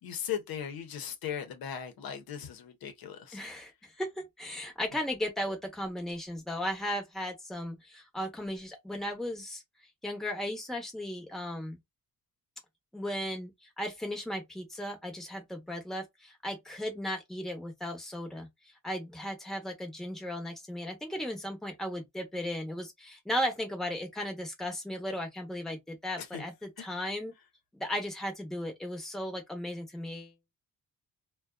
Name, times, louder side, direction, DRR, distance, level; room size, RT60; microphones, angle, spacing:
voice 1, 0.0-3.4 26.2-26.4 26.8-26.9, left 8 dB, 80° left, 0.8 m, -38 dB
voice 2, 3.3-9.6 10.0-11.8 12.9-13.5 13.8-18.5 18.8-27.3 27.7-30.3, equal, ahead, 0.8 m, -36 dB
2.4 x 2.2 x 2.2 m
wide cardioid pair, 140°, 35 cm